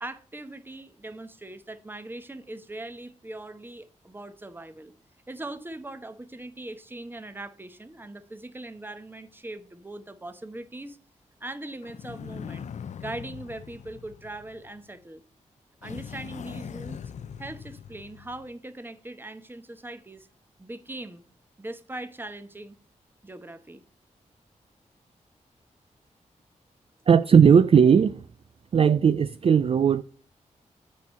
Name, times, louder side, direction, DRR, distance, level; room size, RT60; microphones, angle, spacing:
voice 1, 0.0-4.9 5.3-11.0 11.4-12.7 13.0-15.2 15.8-17.0 17.4-20.3 20.6-21.2 21.6-22.8 23.2-23.8, right 2 dB, 15° right, 0.9 m, -40 dB
sound 1, 11.8-14.9 15.8-18.5, left 7 dB, 65° left, 0.4 m, -41 dB
voice 2, 27.1-28.3 28.7-30.0, right 7 dB, 45° right, 0.4 m, -18 dB
8.3 x 4.6 x 5.3 m
wide cardioid pair, 90°, 13 cm